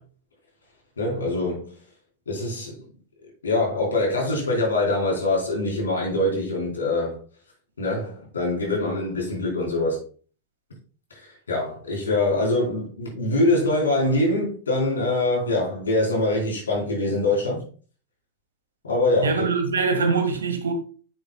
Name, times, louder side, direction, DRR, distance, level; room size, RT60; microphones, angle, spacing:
voice 1, 1.0-1.7 2.3-2.8 3.4-7.2 7.8-10.0 11.1-17.6 18.9-19.4, left 2 dB, 70° left, 4.0 m, -24 dB
voice 2, 19.2-20.7, right 4 dB, 70° right, 1.6 m, -23 dB
9.4 x 7.5 x 2.2 m
figure-of-eight pair, 90°, 0 cm